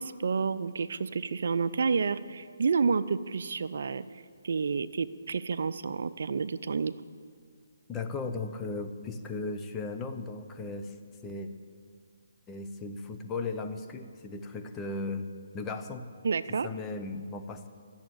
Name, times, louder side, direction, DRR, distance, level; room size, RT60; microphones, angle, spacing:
voice 1, 0.0-4.0 4.4-6.9 16.2-16.7, right 5 dB, 65° right, 14 dB, 0.5 m, -29 dB
voice 2, 7.9-10.9 11.2-11.5 12.5-15.3 15.5-16.1 16.6-17.7, left 3 dB, 15° left, 6 dB, 0.8 m, -36 dB
14.0 x 7.3 x 8.9 m, 2.1 s
hypercardioid pair, 155°, 0 cm